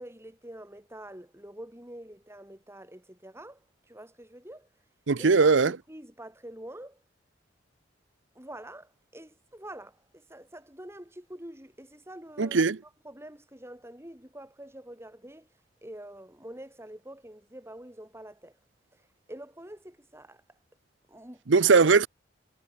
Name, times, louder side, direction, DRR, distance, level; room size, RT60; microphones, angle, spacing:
voice 1, 0.0-4.7 5.2-7.0 8.3-12.8 13.0-15.5 15.8-18.6 18.9-19.0 19.3-20.4 21.1-21.4, right 1 dB, 15° right, 7.5 m, -46 dB
voice 2, 5.1-5.7 12.4-12.8 21.5-22.1, right 4 dB, 85° right, 0.7 m, -20 dB
head